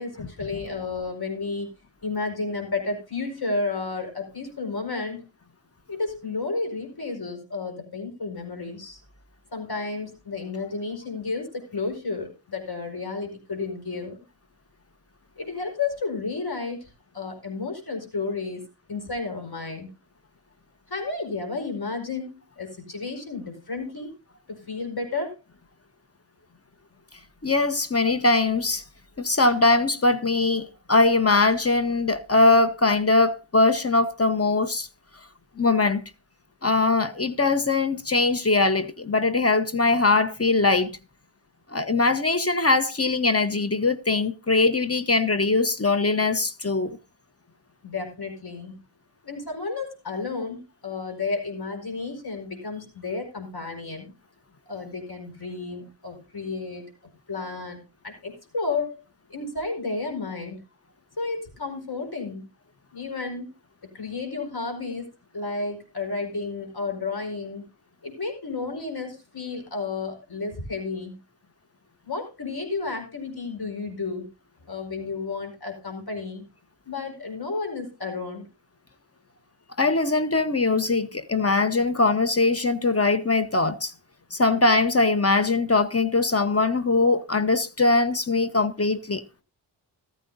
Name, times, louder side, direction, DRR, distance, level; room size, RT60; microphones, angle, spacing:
voice 1, 0.0-1.7 2.0-5.2 5.9-9.0 9.5-14.2 15.3-18.6 18.9-19.9 20.9-24.1 24.5-25.3 47.8-48.8 49.2-54.1 54.7-56.8 57.3-57.8 58.0-59.0 59.3-60.6 61.2-62.5 62.9-63.5 63.9-65.1 65.3-67.6 68.0-71.2 72.0-74.3 74.7-76.4 76.8-78.5, left 3 dB, 55° left, 5.0 m, -32 dB
voice 2, 27.4-28.8 29.2-34.9 35.6-36.0 36.6-41.0 41.7-47.0 79.8-83.9 84.3-89.2, left 3 dB, 30° left, 1.1 m, -21 dB
14.0 x 14.0 x 2.6 m
cardioid pair, 40°, 46 cm